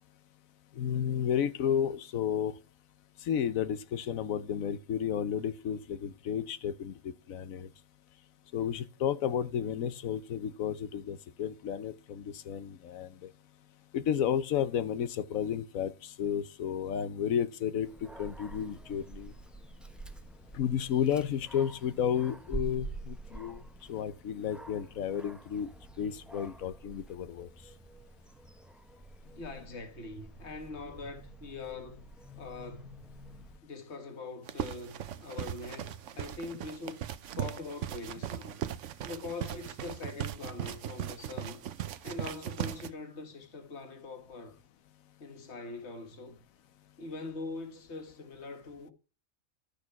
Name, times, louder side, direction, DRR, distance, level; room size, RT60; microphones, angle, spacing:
voice 1, 0.8-2.5 3.2-7.7 8.5-13.3 13.9-17.9 18.2-19.3 20.5-23.6 23.9-25.7 26.0-27.5, left 9 dB, 80° left, 1.2 m, -32 dB
Dog, 17.8-33.6, right 2 dB, ahead, 0.9 m, -47 dB
voice 2, 29.3-32.0 32.4-33.0 33.6-37.1 37.4-38.6 39.0-41.7 42.0-44.6 45.2-46.4 47.0-48.9, left 3 dB, 55° left, 1.9 m, -43 dB
sound 1, 34.5-42.9, right 11 dB, 65° right, 1.0 m, -38 dB
12.0 x 6.7 x 4.7 m
omnidirectional pair, 1.4 m